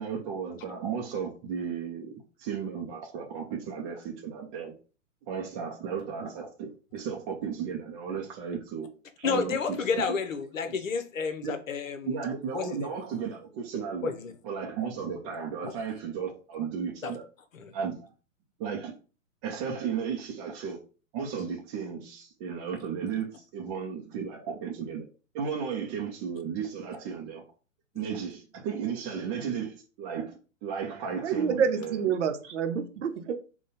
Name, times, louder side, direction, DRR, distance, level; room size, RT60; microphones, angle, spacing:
voice 1, 0.0-2.1 2.4-4.7 5.3-8.9 9.2-9.6 9.9-10.2 10.7-10.8 11.4-11.5 12.0-14.1 14.4-17.2 17.7-18.1 18.6-18.9 19.4-20.8 21.1-25.0 25.3-27.4 27.9-30.3 30.6-32.1 32.4-32.5, right 6 dB, 25° right, 0.5 m, -34 dB
voice 2, 9.2-12.1 12.5-12.9 14.0-14.3 17.0-17.1 17.5-17.7 28.0-28.1, left 5 dB, 75° left, 0.8 m, -31 dB
voice 3, 31.2-33.3, right 7 dB, 65° right, 0.8 m, -28 dB
3.7 x 2.3 x 4.0 m
hypercardioid pair, 120°, 39 cm